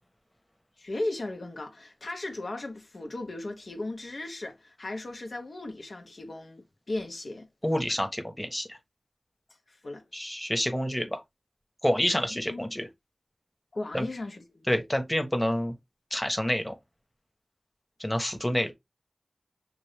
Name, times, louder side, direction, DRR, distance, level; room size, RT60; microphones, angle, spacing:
voice 1, 0.8-7.5 9.7-10.0 12.3-12.6 13.7-14.8, left 2 dB, 80° left, 1.1 m, -36 dB
voice 2, 7.6-8.8 10.1-11.2 11.8-12.9 13.9-14.1 14.7-15.7 16.1-16.8 18.0-18.7, equal, 10° left, 1.1 m, -28 dB
5.9 x 2.7 x 3.3 m
cardioid pair, 40°, 0 cm